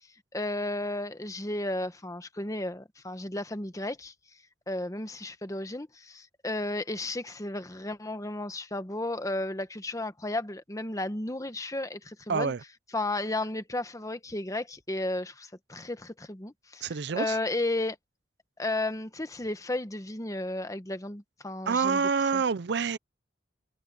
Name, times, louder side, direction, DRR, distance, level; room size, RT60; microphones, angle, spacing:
voice 1, 0.3-4.1 4.7-12.5 12.9-18.0 18.6-22.0 22.3-22.4, left 2 dB, 20° left, 1.1 m, -33 dB
voice 2, 12.3-12.6 16.8-17.4 21.7-23.0, right 5 dB, 60° right, 0.5 m, -27 dB
head